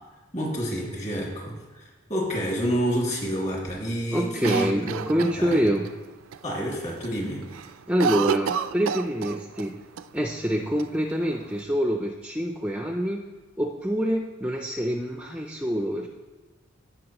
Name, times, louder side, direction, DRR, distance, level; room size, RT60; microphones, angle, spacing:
voice 1, 0.3-5.6 6.4-7.5, equal, 35° left, -3 dB, 2.2 m, -29 dB
voice 2, 4.1-5.9 7.9-9.8 10.1-13.2 13.6-16.1, equal, 5° right, 3 dB, 0.4 m, -26 dB
Cough, 4.4-5.9 6.3-6.4 6.7-7.1 7.4-9.7 10.0-10.1 10.8-11.6, right 7 dB, 85° right, 0.4 m, -30 dB
15.5 x 5.7 x 3.0 m, 1.3 s
head